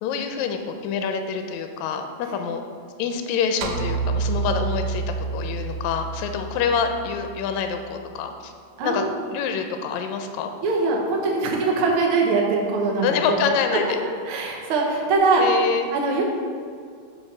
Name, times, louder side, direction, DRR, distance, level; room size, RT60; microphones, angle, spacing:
voice 1, 0.0-2.6 3.0-5.0 5.3-8.5 8.8-10.5 13.0-13.9 15.4-15.9, left 6 dB, 80° left, 6 dB, 1.8 m, -26 dB
sound 1, 3.6-8.0, right 4 dB, 85° right, 2.0 m, -29 dB
voice 2, 8.8-9.1 10.6-13.4 14.3-15.4 15.9-16.2, right 4 dB, 65° right, 0 dB, 1.4 m, -22 dB
4.8 x 4.5 x 5.8 m, 2.2 s
omnidirectional pair, 3.4 m